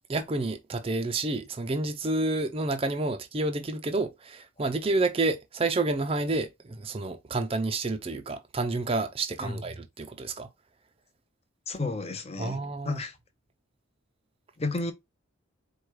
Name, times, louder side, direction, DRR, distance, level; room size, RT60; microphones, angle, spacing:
voice 1, 0.1-10.5 12.4-13.0, right 2 dB, 30° right, 0.5 m, -29 dB
voice 2, 11.7-12.6 12.8-13.1 14.6-14.9, left 3 dB, 30° left, 0.7 m, -32 dB
4.7 x 2.3 x 4.6 m
head